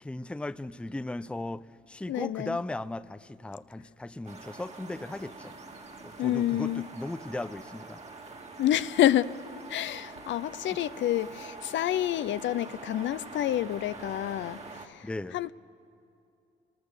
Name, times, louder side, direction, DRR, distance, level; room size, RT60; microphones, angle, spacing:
voice 1, 0.0-5.5 6.0-8.0 15.0-15.4, left 2 dB, 5° left, 0.5 m, -37 dB
voice 2, 2.1-2.6 6.2-6.8 8.6-9.3 9.7-14.6 14.9-15.1 15.3-15.5, left 12 dB, 70° left, 0.6 m, -28 dB
sound 1, 4.2-14.9, right 3 dB, 35° right, 2.0 m, -45 dB
28.5 x 20.0 x 6.8 m
cardioid pair, 90°, 20 cm